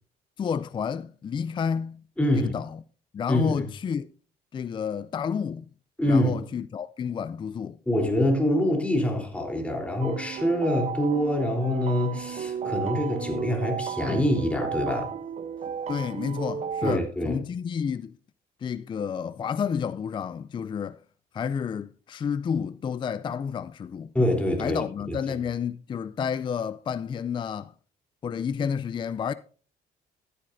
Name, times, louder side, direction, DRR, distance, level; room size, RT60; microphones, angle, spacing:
voice 1, 0.4-2.0 2.3-2.8 3.1-4.1 4.5-5.7 6.1-7.8 15.9-18.2 18.6-21.0 21.3-24.1 24.6-27.7 28.2-29.3, left 7 dB, 30° left, 0.4 m, -30 dB
voice 2, 2.2-2.6 3.3-3.6 6.0-6.4 7.9-15.2 16.8-17.4 24.1-25.2, left 1 dB, 5° left, 3.5 m, -25 dB
sound 1, 10.0-16.9, right 7 dB, 40° right, 0.6 m, -34 dB
14.5 x 10.0 x 2.6 m
cardioid pair, 100°, 16 cm